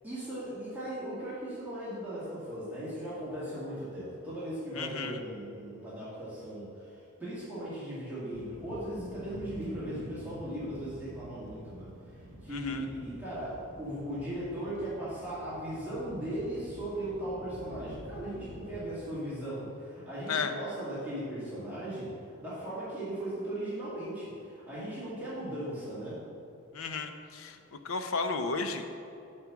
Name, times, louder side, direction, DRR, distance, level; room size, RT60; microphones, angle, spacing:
voice 1, 0.0-11.9 12.4-26.2, right 1 dB, 10° right, -11 dB, 2.3 m, -38 dB
voice 2, 4.8-5.2 12.5-12.8 20.3-20.5 26.7-27.6 27.8-28.9, left 4 dB, 80° left, 7 dB, 0.7 m, -33 dB
sound 1, 8.3-18.8, equal, 65° right, 1.2 m, -48 dB
9.7 x 4.4 x 7.1 m, 2.8 s
head